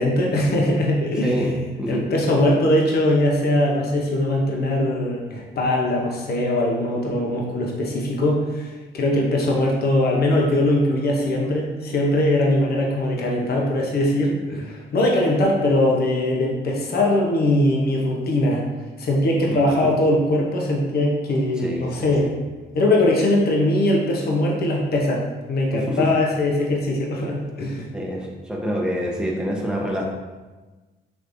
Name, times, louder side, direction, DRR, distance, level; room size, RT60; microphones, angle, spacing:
voice 1, 0.0-1.5 1.9-18.6 19.0-22.3 22.7-27.9, left 1 dB, 50° left, -1 dB, 0.9 m, -21 dB
voice 2, 1.2-2.0 19.4-19.9 21.6-22.3 25.7-26.1 27.9-30.0, equal, 5° right, -2 dB, 0.9 m, -27 dB
5.2 x 3.1 x 2.6 m, 1.2 s
cardioid pair, 90°, 20 cm